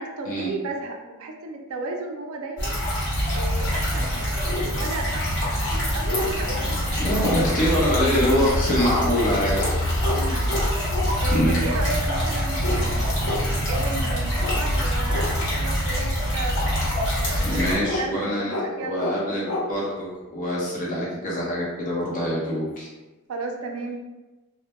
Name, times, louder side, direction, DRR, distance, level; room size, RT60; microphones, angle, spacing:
voice 1, 0.0-2.8 3.3-5.3 5.7-7.1 10.1-10.5 10.9-16.6 17.2-17.7 18.0-19.5 23.3-24.0, right 2 dB, 70° right, 3 dB, 0.4 m, -34 dB
sound 1, 2.6-17.7, equal, 55° left, 1.0 m, -25 dB
sound 2, 3.8-3.9 4.4-4.7 5.3-5.4 5.7-6.3 7.8-8.0 8.7-8.9 9.5-9.7 10.0-10.2 10.5-11.1 12.6-12.8 13.2-13.4 14.4-14.6 15.1-15.3 17.8-18.0 18.5-18.7 19.0-19.2 19.4-19.6, left 2 dB, 80° left, 0.6 m, -29 dB
voice 2, 7.0-9.7 11.3-11.6 17.4-22.9, equal, 40° left, -5 dB, 0.7 m, -24 dB
2.1 x 2.1 x 2.9 m, 1.1 s
head